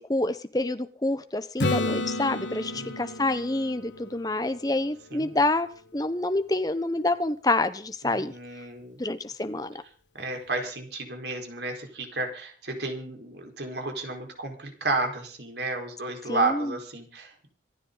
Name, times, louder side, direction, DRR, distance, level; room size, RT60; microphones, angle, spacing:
voice 1, 0.1-5.7 5.9-8.3 9.0-9.7 16.3-16.7, left 2 dB, 20° left, 10 dB, 1.0 m, -27 dB
Acoustic guitar / Strum, 1.6-5.4 10.2-10.3, left 2 dB, 90° left, 1.6 m, -32 dB
voice 2, 8.0-9.0 10.1-17.5, right 3 dB, 75° right, 3 dB, 4.6 m, -32 dB
26.0 x 9.9 x 4.0 m, 0.42 s
head